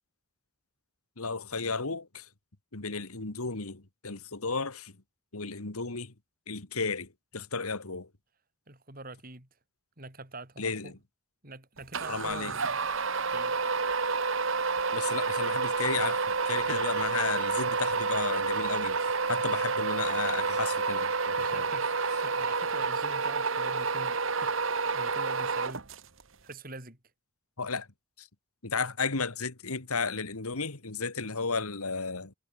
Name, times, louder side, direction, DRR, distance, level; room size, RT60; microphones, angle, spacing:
voice 1, 1.2-2.3 2.7-5.0 5.3-6.1 6.5-8.1 10.6-10.9 12.1-12.5 14.9-21.7 27.6-27.9 28.2-28.3 28.6-32.3, left 4 dB, 85° left, 2.1 m, -33 dB
voice 2, 8.7-9.5 10.0-11.0 11.4-12.9 13.3-13.6 21.3-24.5 24.9-25.9 26.4-27.0, right 2 dB, 40° right, 4.1 m, -45 dB
sound 1, 11.9-26.2, right 4 dB, 60° right, 1.4 m, -29 dB
head